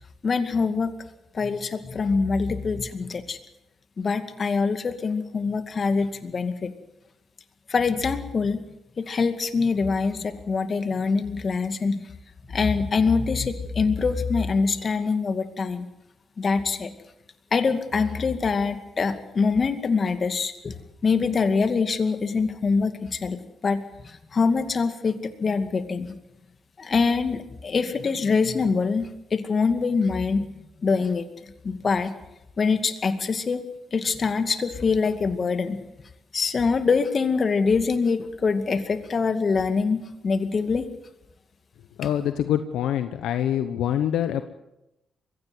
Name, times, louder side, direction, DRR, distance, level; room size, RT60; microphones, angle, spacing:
voice 1, 0.2-0.9 1.3-3.4 4.0-6.7 7.7-8.6 9.0-12.0 12.5-15.9 16.4-16.9 17.5-20.7 21.0-23.4 23.6-26.2 26.8-30.5 30.8-31.2 31.6-32.1 32.6-33.6 33.9-35.8 36.3-40.9, left 4 dB, 45° left, 9 dB, 2.3 m, -24 dB
voice 2, 42.0-44.4, left 10 dB, 80° left, 10 dB, 1.0 m, -25 dB
23.0 x 16.5 x 8.0 m, 0.91 s
supercardioid pair, 55°, 0 cm